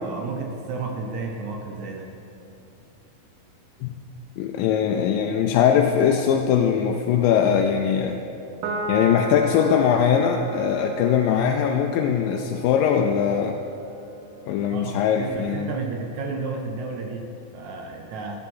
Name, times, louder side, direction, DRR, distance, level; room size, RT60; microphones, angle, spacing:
voice 1, 0.0-2.2 14.7-18.4, right 4 dB, 85° right, 3 dB, 1.6 m, -32 dB
voice 2, 4.4-8.2 8.9-13.6 14.5-15.7, left 8 dB, 80° left, 3 dB, 2.1 m, -21 dB
Piano, 8.6-15.3, right 2 dB, 65° right, 2.4 m, -36 dB
13.5 x 11.5 x 4.2 m, 2.8 s
omnidirectional pair, 4.3 m